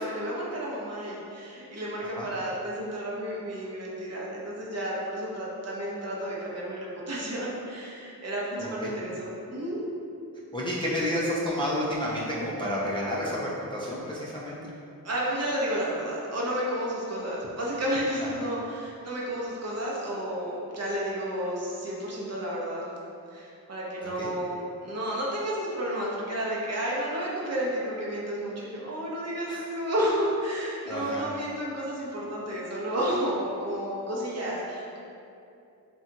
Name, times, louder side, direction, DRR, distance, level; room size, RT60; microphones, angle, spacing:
voice 1, 0.0-9.8 15.0-22.9 23.3-35.0, equal, 45° right, -5 dB, 0.6 m, -31 dB
voice 2, 8.6-8.9 10.5-14.6 18.4-18.5 24.0-24.3 29.5-29.6 30.9-31.3, equal, 15° left, -7 dB, 0.3 m, -30 dB
2.7 x 2.2 x 2.6 m, 2.6 s
wide cardioid pair, 95°, 37 cm